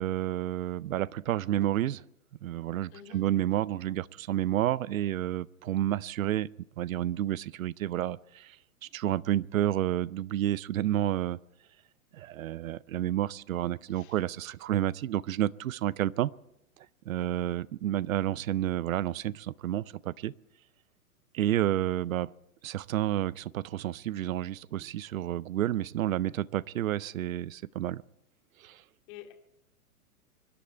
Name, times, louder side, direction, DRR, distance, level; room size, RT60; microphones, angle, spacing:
voice 1, 0.0-2.0 2.4-6.5 6.8-8.6 8.8-11.4 12.1-16.3 17.1-20.3 21.3-22.3 22.6-28.0 28.6-28.8, right 12 dB, 65° right, 23 dB, 0.6 m, -30 dB
voice 2, 2.9-3.3 13.9-14.2 17.1-17.5 29.1-29.3, left 11 dB, 45° left, 5 dB, 2.4 m, -49 dB
25.5 x 11.5 x 4.5 m, 0.82 s
figure-of-eight pair, 115°, 44 cm